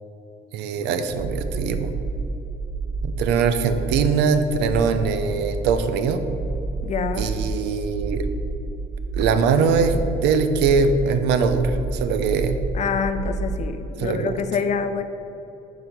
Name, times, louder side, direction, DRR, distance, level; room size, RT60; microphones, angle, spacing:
voice 1, 0.5-1.9 3.0-6.2 7.2-8.3 9.1-12.6 14.0-14.4, right 5 dB, 90° right, 9 dB, 0.6 m, -22 dB
sound 1, 1.1-13.7, right 3 dB, 40° right, 1.2 m, -29 dB
voice 2, 6.8-7.3 12.7-15.0, left 6 dB, 45° left, 9 dB, 0.6 m, -26 dB
7.2 x 4.1 x 6.6 m, 3.0 s
cardioid pair, 110°, 17 cm